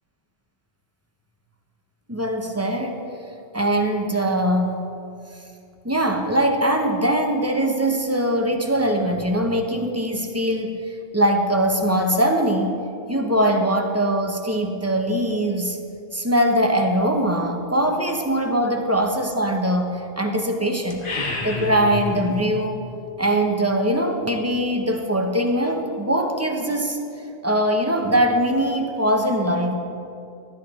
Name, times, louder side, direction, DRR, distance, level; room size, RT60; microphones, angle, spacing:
voice 1, 2.1-3.0 3.5-4.8 5.8-10.8 11.1-12.8 13.1-15.8 16.1-21.1 21.4-22.9 23.2-27.0 27.4-29.7, right 1 dB, 15° right, 3 dB, 0.8 m, -22 dB
sound 1, 20.9-22.5, left 3 dB, 50° left, 1.2 m, -29 dB
13.0 x 12.0 x 3.6 m, 2.5 s
omnidirectional pair, 1.2 m